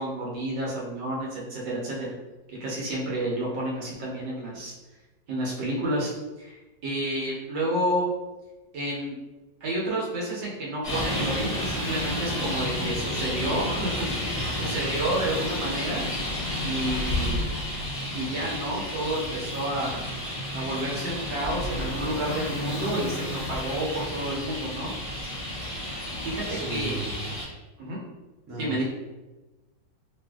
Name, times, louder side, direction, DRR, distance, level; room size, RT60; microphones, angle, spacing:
voice 1, 0.0-2.1 2.6-4.7 5.3-6.1 6.4-8.1 8.7-9.2 9.6-14.1 14.5-16.0 16.6-17.5 18.1-20.1 20.5-24.9 26.2-27.0 27.8-28.0 28.6-28.8, right 1 dB, 70° right, -5 dB, 1.5 m, -30 dB
Traffic noise roadway noise, 10.8-27.4, left 1 dB, 25° left, 0.7 m, -31 dB
voice 2, 26.4-27.3 28.5-28.8, right 2 dB, 50° right, -7 dB, 1.2 m, -36 dB
3.3 x 2.5 x 2.3 m, 1.1 s
omnidirectional pair, 2.1 m